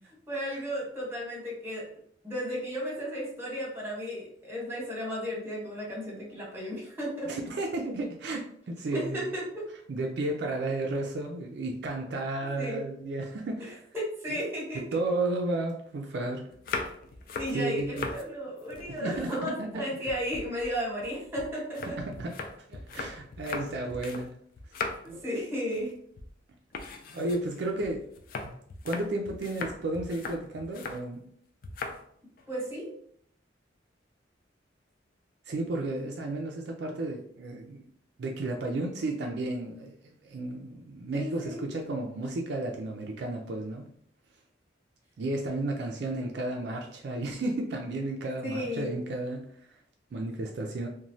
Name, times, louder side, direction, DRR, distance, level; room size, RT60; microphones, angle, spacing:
voice 1, 0.3-1.8 2.2-7.3 8.9-9.4 12.6-12.9 13.9-14.8 17.3-22.0 25.0-25.9 32.5-32.9 41.1-41.6 48.4-49.0, equal, 15° right, -4 dB, 0.9 m, -34 dB
voice 2, 7.3-9.2 9.9-13.8 14.3-14.4 14.9-16.5 17.5-18.1 18.9-19.8 22.0-24.3 25.1-25.2 27.1-28.0 28.4-28.6 28.8-31.2 35.5-37.8 38.2-39.9 40.2-43.9 45.2-49.4 49.7-49.8 50.1-50.9, right 2 dB, 60° right, 1 dB, 0.4 m, -33 dB
sound 1, 16.5-18.2 18.6-19.8 20.1-24.3 24.5-25.2 25.6-25.9 26.2-26.3 26.7-31.0 31.6-32.0 32.4-32.7, left 4 dB, 50° left, 0.3 m, -39 dB
3.0 x 2.1 x 2.6 m, 0.65 s
head